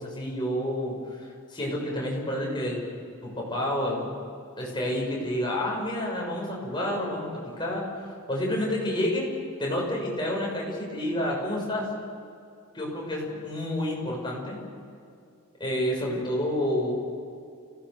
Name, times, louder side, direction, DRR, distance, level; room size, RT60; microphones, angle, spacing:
voice 1, 0.0-2.8 3.2-4.1 4.6-9.3 9.6-11.9 12.7-14.6 15.6-16.9, left 1 dB, 20° left, -3 dB, 6.5 m, -29 dB
29.5 x 18.0 x 7.1 m, 2.4 s
head